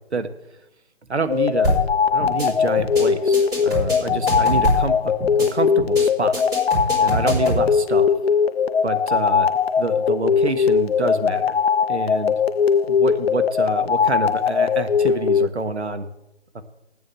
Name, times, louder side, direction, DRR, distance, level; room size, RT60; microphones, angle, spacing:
voice 1, 1.1-1.8 2.1-5.1 5.5-6.4 7.0-8.1 8.8-9.5 9.8-11.6 11.9-12.4 12.9-16.1 16.5-16.6, right 3 dB, 80° right, 8 dB, 1.3 m, -27 dB
sound 1, 1.3-15.5, left 6 dB, 65° left, 0.5 m, -20 dB
sound 2, 1.6-1.9 2.2-2.5 2.8-3.0 3.3-4.9 5.2-5.5 5.8-6.0 6.3-7.6, right 1 dB, 10° right, 3.1 m, -24 dB
8.8 x 7.2 x 8.8 m, 0.91 s
figure-of-eight pair, 150°, 33 cm